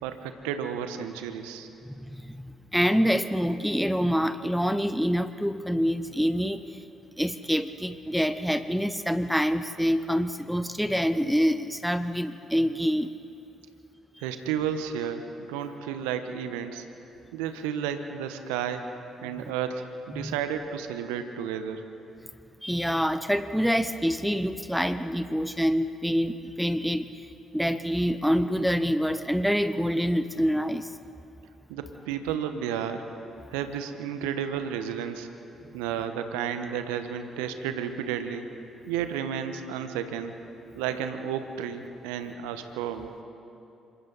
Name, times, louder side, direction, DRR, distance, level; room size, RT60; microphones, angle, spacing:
voice 1, 0.0-1.7 14.2-16.8 17.3-18.8 19.2-21.8 31.7-33.0 33.5-35.3 35.7-38.5 38.9-40.4 40.7-43.1, right 8 dB, 80° right, 8 dB, 1.1 m, -32 dB
voice 2, 1.9-6.8 7.2-13.1 19.4-19.5 20.1-20.3 22.6-27.3 27.5-30.9, equal, ahead, 11 dB, 0.8 m, -26 dB
26.5 x 23.5 x 4.1 m, 2.7 s
hypercardioid pair, 45°, 0 cm